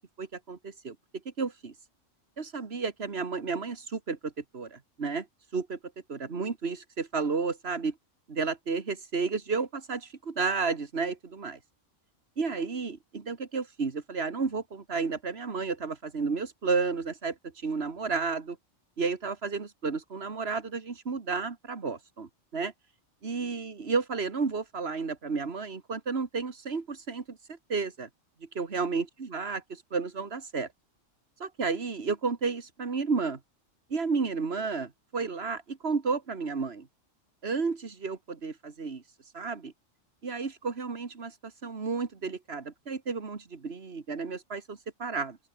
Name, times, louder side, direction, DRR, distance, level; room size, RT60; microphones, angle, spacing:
voice 1, 0.2-1.0 1.3-1.7 2.4-5.3 5.5-5.8 6.1-8.0 8.3-11.6 12.4-18.6 19.0-22.7 23.2-28.1 28.4-30.7 31.4-33.4 33.9-36.9 37.4-39.0 39.3-39.7 40.2-45.4, right 4 dB, 55° right, 2.1 m, -32 dB
open air
omnidirectional pair, 1.3 m